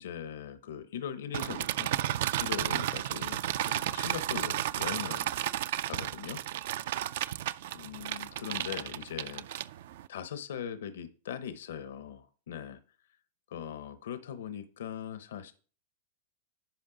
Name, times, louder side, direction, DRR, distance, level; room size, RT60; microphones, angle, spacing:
voice 1, 0.0-1.9 2.4-5.3 5.8-6.4 7.7-9.4 10.1-12.8 13.5-15.5, left 8 dB, 85° left, 11 dB, 0.7 m, -40 dB
sound 1, 1.3-10.1, right 12 dB, 65° right, 0.3 m, -33 dB
10.5 x 5.3 x 3.8 m, 0.40 s
supercardioid pair, 150°, 0 cm